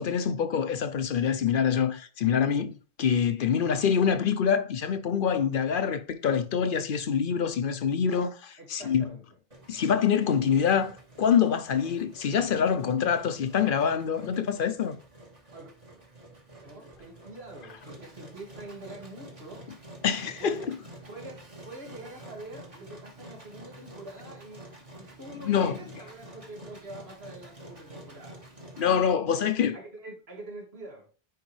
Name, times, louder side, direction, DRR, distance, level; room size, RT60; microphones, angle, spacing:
voice 1, 0.0-2.7 3.0-9.1 9.7-15.0 20.0-20.8 25.4-25.8 28.8-29.8, left 7 dB, 60° left, 0.8 m, -25 dB
voice 2, 8.6-9.2 15.5-15.7 16.6-19.7 20.4-20.7 21.1-24.6 24.9-28.4 29.7-31.1, right 2 dB, 75° right, 2.3 m, -45 dB
Engine, 9.5-28.9, right 1 dB, 35° right, 1.5 m, -49 dB
9.3 x 4.7 x 3.2 m
omnidirectional pair, 1.0 m